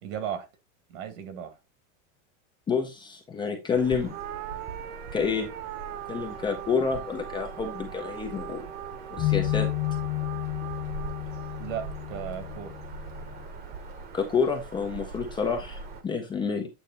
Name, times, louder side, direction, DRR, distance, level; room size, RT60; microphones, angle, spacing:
voice 1, 0.0-0.5 0.9-1.6 11.6-12.7, right 9 dB, 70° right, 2.0 m, -35 dB
voice 2, 2.7-4.1 5.1-5.5 6.1-8.7 9.1-9.7 14.1-16.7, left 5 dB, 10° left, 0.5 m, -28 dB
Bird vocalization bird call bird song, 3.7-16.0, right 4 dB, 25° right, 1.0 m, -42 dB
sound 1, 4.1-12.7, right 12 dB, 90° right, 0.7 m, -41 dB
sound 2, 9.2-13.4, left 18 dB, 35° left, 1.2 m, -31 dB
8.5 x 3.2 x 4.0 m
supercardioid pair, 165°, 40 cm